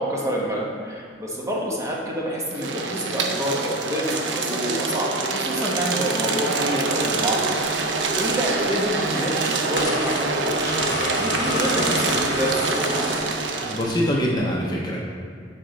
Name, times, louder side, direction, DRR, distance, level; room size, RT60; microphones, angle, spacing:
voice 1, 0.0-7.6 8.2-13.3, equal, 15° right, -3 dB, 1.0 m, -28 dB
sound 1, 2.5-14.1, right 3 dB, 85° right, 0.6 m, -25 dB
sound 2, 6.9-7.0 7.4-7.5 8.7-8.8 9.8-13.4 13.8-13.9 14.3-14.4, left 2 dB, 70° left, 0.9 m, -29 dB
voice 2, 13.6-15.0, equal, 25° left, -3 dB, 0.6 m, -24 dB
6.9 x 4.2 x 3.9 m, 2.2 s
head